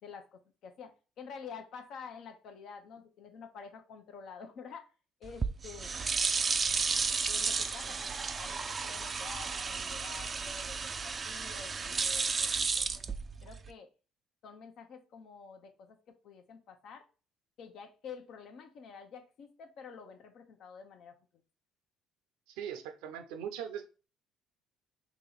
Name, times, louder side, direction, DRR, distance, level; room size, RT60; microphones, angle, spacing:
voice 1, 0.0-4.9 5.2-6.0 7.3-13.0 13.4-13.9 14.4-17.1 17.6-21.1, left 6 dB, 65° left, 6 dB, 0.7 m, -49 dB
sound 1, 5.2-13.7, right 5 dB, 35° right, 0.3 m, -33 dB
voice 2, 22.6-23.9, right 8 dB, 85° right, 7 dB, 0.6 m, -40 dB
2.9 x 2.9 x 3.9 m, 0.34 s
supercardioid pair, 85°, 0 cm